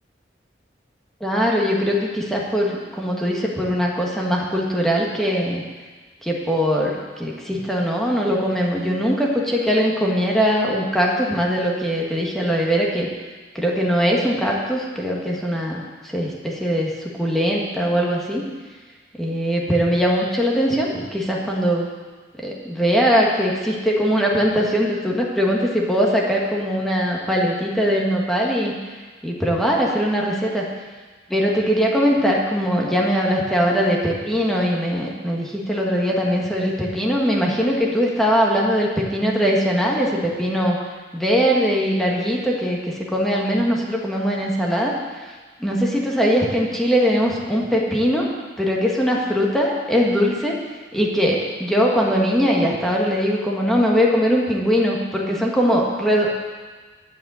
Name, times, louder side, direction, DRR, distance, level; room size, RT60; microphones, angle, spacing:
voice 1, 1.2-5.6 6.2-13.1 13.6-18.4 19.2-21.9 22.4-28.8 29.2-30.7 31.3-40.8 41.1-44.9 45.6-48.3 48.6-50.6 50.9-56.4, equal, ahead, -2 dB, 1.7 m, -21 dB
12.0 x 5.2 x 8.3 m, 1.4 s
head